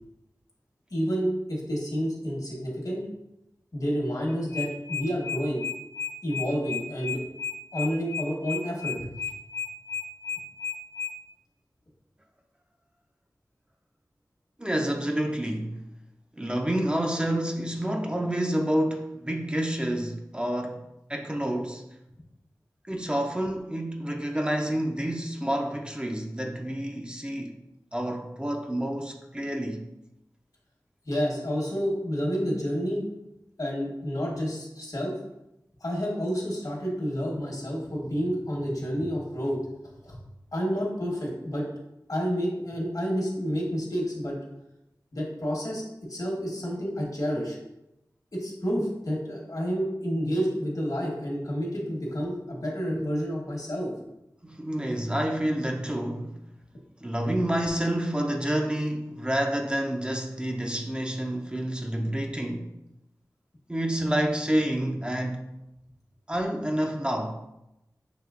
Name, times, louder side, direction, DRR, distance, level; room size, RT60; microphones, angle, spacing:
voice 1, 0.9-3.1 3.7-5.7 6.2-7.2 7.7-9.1 31.1-33.1 33.6-35.2 35.8-39.6 40.0-40.2 40.5-41.7 42.1-44.4 45.1-47.6 48.3-53.9, equal, 60° left, 1.0 m, -29 dB
sound 1, 4.3-11.1, left 6 dB, 35° left, 0.6 m, -33 dB
voice 2, 14.6-15.8 16.4-20.8 21.1-21.9 22.9-27.6 27.9-29.8 54.4-56.4 57.0-62.7 63.7-65.5 66.3-67.5, right 1 dB, 15° right, 0.4 m, -28 dB
5.7 x 2.9 x 2.4 m
wide cardioid pair, 65°, 7 cm